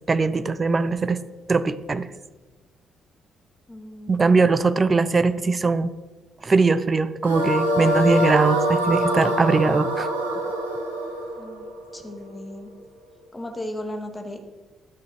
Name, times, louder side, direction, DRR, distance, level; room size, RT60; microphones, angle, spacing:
voice 1, 0.1-1.2 1.5-2.1 4.1-5.9 6.4-10.1, right 4 dB, 30° right, 13 dB, 0.7 m, -21 dB
voice 2, 3.7-4.5 11.4-11.7 11.9-12.7 13.3-14.5, left 1 dB, 20° left, 4 dB, 2.3 m, -36 dB
sound 1, 7.2-12.5, equal, 85° right, 1.4 m, -24 dB
12.5 x 6.7 x 6.3 m, 1.2 s
figure-of-eight pair, 40°, 0 cm